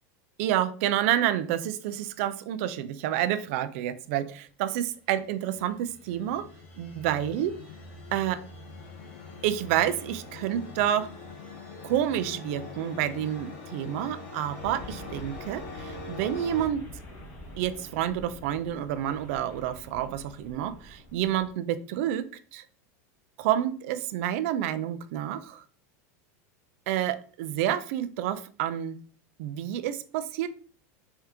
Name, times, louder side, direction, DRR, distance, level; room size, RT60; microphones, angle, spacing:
voice 1, 0.4-6.5 6.8-7.5 8.1-8.4 9.4-11.1 11.8-16.8 17.6-22.6 23.4-25.6 26.9-29.0 29.4-30.5, right 11 dB, 55° right, 11 dB, 0.4 m, -29 dB
sound 1, 5.1-16.7, left 3 dB, 55° left, 1.2 m, -43 dB
sound 2, 14.6-21.5, left 2 dB, 35° left, 1.3 m, -46 dB
3.6 x 3.3 x 2.9 m, 0.42 s
supercardioid pair, 165°, 9 cm